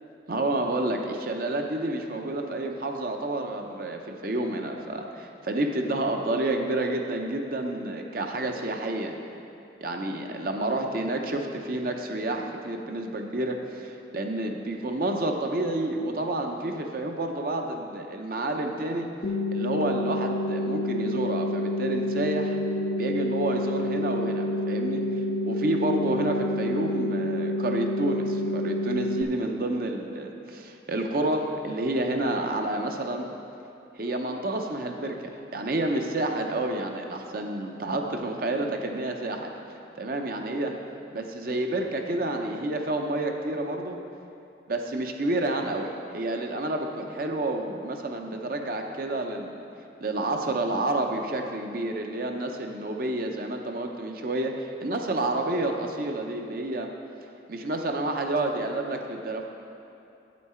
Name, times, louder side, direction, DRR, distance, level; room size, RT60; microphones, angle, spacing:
voice 1, 0.3-9.1 9.8-19.1 19.5-22.6 23.0-25.2 25.5-33.3 34.0-39.5 40.0-40.7 41.1-44.0 44.7-49.6 50.0-56.9 57.5-59.5, right 2 dB, 50° right, 3 dB, 0.6 m, -29 dB
sound 1, 19.2-29.2, left 1 dB, 45° left, 0.4 m, -28 dB
8.4 x 8.2 x 4.3 m, 2.8 s
head